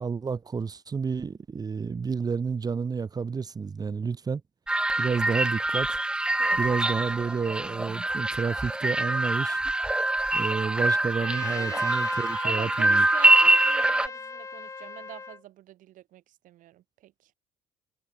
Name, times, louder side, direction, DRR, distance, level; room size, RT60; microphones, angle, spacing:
voice 1, 0.0-4.4 5.0-6.0 6.6-9.6 10.3-13.1, right 5 dB, 25° right, 2.2 m, -30 dB
sound 1, 4.7-14.1, right 1 dB, 5° right, 0.6 m, -24 dB
voice 2, 6.4-7.2 10.0-10.1 11.5-11.9 12.4-17.3, right 14 dB, 60° right, 5.0 m, -45 dB
Trumpet, 11.1-15.4, left 4 dB, 20° left, 4.0 m, -40 dB
cardioid pair, 120°, 15 cm